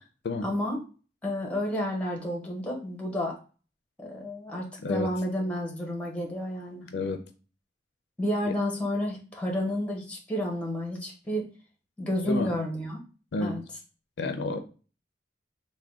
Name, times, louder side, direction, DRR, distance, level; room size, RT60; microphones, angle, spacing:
voice 1, 0.4-0.8 1.2-3.4 4.0-6.9 8.2-11.5 12.0-13.0 13.4-13.6, left 1 dB, 5° left, -1 dB, 0.7 m, -30 dB
voice 2, 14.2-14.6, left 2 dB, 70° left, 8 dB, 0.4 m, -29 dB
3.4 x 2.2 x 3.5 m, 0.36 s
head